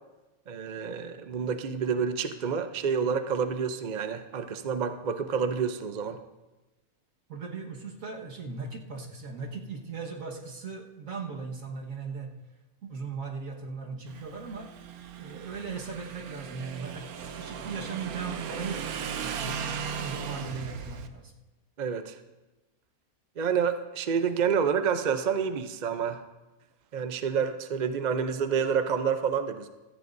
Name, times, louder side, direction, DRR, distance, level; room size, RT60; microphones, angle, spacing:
voice 1, 0.5-6.2 21.8-22.2 23.4-26.2 26.9-29.7, right 6 dB, 45° right, 8 dB, 0.6 m, -28 dB
voice 2, 7.3-12.3 12.8-14.7 15.2-21.3, right 4 dB, 70° right, 0 dB, 1.9 m, -38 dB
Motorcycle / Engine, 14.1-21.1, right 7 dB, 90° right, 1.3 m, -37 dB
17.0 x 14.0 x 2.6 m, 1.1 s
omnidirectional pair, 1.5 m